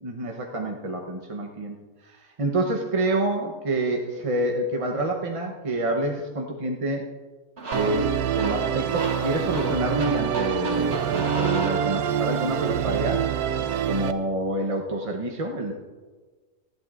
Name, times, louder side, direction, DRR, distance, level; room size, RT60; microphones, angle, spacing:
voice 1, 0.0-1.8 2.0-7.0 7.7-13.2 13.9-15.7, right 1 dB, 30° right, 1 dB, 0.7 m, -27 dB
sound 1, 7.6-12.4, right 2 dB, 45° right, 1.9 m, -34 dB
Musical instrument, 7.7-14.1, right 9 dB, 80° right, 1.1 m, -26 dB
18.5 x 13.5 x 2.5 m, 1.4 s
omnidirectional pair, 1.6 m